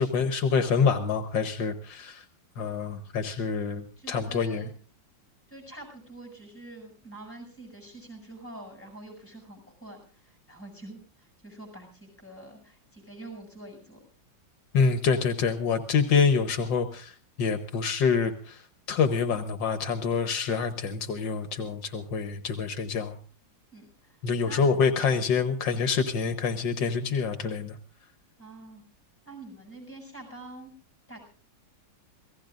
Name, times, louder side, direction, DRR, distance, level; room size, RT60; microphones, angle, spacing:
voice 1, 0.0-2.2 2.6-4.6 14.7-17.1 17.4-18.6 18.9-23.2 24.2-27.8, left 5 dB, 75° left, 9 dB, 1.7 m, -26 dB
voice 2, 4.0-4.7 5.5-14.0 23.7-24.8 28.4-28.8 29.3-30.7 31.1-31.2, right 2 dB, 5° left, 2 dB, 7.5 m, -46 dB
27.5 x 17.5 x 2.5 m, 0.40 s
omnidirectional pair, 2.0 m